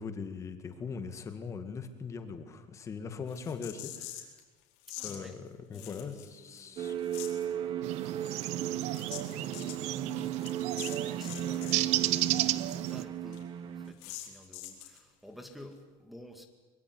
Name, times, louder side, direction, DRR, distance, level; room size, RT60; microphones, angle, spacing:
voice 1, 0.0-4.2 5.0-7.0, left 5 dB, 25° left, 8 dB, 2.0 m, -40 dB
sound 1, 3.3-4.4 4.8-5.2 5.7-6.6 6.8-7.5 8.0-11.9 12.1-12.2 12.5-12.6 12.9-13.0 13.3-13.4 14.0-15.0, left 13 dB, 90° left, 4.6 m, -45 dB
voice 2, 4.9-5.4 5.7-7.5 8.2-16.5, left 1 dB, ahead, 6 dB, 2.1 m, -52 dB
sound 2, 6.8-13.9, right 11 dB, 40° right, 1.4 m, -35 dB
sound 3, 7.8-13.0, right 16 dB, 60° right, 0.9 m, -33 dB
23.5 x 22.0 x 9.7 m, 1.2 s
cardioid pair, 170°, 13 cm